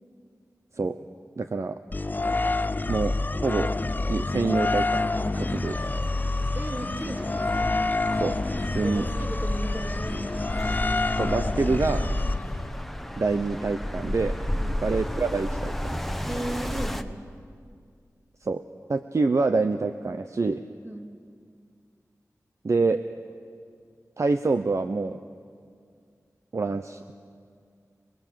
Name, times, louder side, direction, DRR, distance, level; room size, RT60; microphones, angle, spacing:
voice 1, 1.4-1.8 2.9-3.7 4.1-5.8 8.2-8.4 8.7-9.1 11.2-12.1 13.2-14.4 14.8-16.0 18.4-18.6 18.9-20.6 22.6-23.0 24.2-25.2 26.5-27.1, right 3 dB, 55° right, 9 dB, 0.7 m, -26 dB
sound 1, 1.9-12.8, left 2 dB, 30° left, 0.6 m, -28 dB
sound 2, 5.3-17.0, equal, 5° left, 1.1 m, -33 dB
voice 2, 6.5-7.4 8.8-10.4 14.6-14.8 16.3-17.2 20.8-21.1, right 1 dB, 30° right, 1 dB, 3.0 m, -36 dB
28.0 x 20.5 x 7.6 m, 2.2 s
wide cardioid pair, 70°, 6 cm